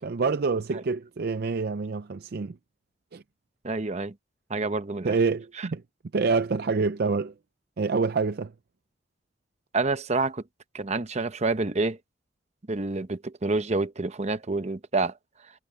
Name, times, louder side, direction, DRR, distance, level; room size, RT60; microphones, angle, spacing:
voice 1, 0.0-2.6 3.1-3.2 5.0-5.8 6.1-7.3 7.8-8.5, right 4 dB, 55° right, 0.5 m, -26 dB
voice 2, 3.6-4.1 4.5-5.1 5.6-5.7 9.7-10.4 10.7-12.0 12.7-15.1, right 3 dB, 35° right, 0.9 m, -28 dB
head